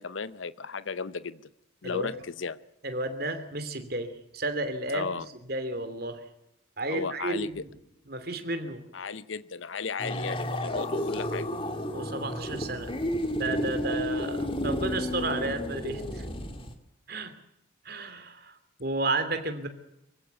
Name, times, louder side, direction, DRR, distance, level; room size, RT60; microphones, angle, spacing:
voice 1, 0.0-1.4 1.8-2.6 4.9-5.3 6.9-7.6 8.9-11.5, left 5 dB, 75° left, 15 dB, 0.8 m, -35 dB
voice 2, 2.8-6.2 6.8-7.7 8.1-8.8 11.9-12.9 13.3-16.2 17.1-17.3 17.8-19.7, right 2 dB, 50° right, 9 dB, 2.9 m, -32 dB
sound 1, 10.0-16.7, left 1 dB, 25° left, 2.2 m, -32 dB
25.0 x 16.0 x 8.0 m, 0.85 s
head